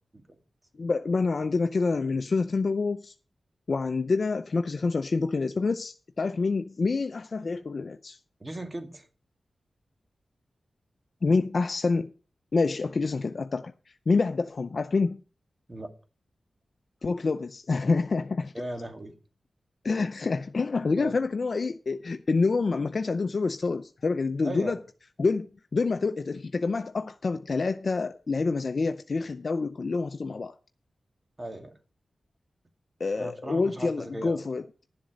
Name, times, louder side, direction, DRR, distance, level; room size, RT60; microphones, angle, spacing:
voice 1, 0.8-3.1 3.7-8.2 11.2-12.1 12.5-13.7 14.1-15.2 17.0-18.5 19.8-24.8 25.2-30.5 33.0-34.6, left 4 dB, 55° left, 0.6 m, -27 dB
voice 2, 8.4-9.1 15.7-15.9 18.5-19.1 21.0-21.2 24.4-24.8 31.4-31.7 33.2-34.5, right 1 dB, 30° right, 2.2 m, -37 dB
11.5 x 7.5 x 5.2 m
cardioid pair, 70°, 0 cm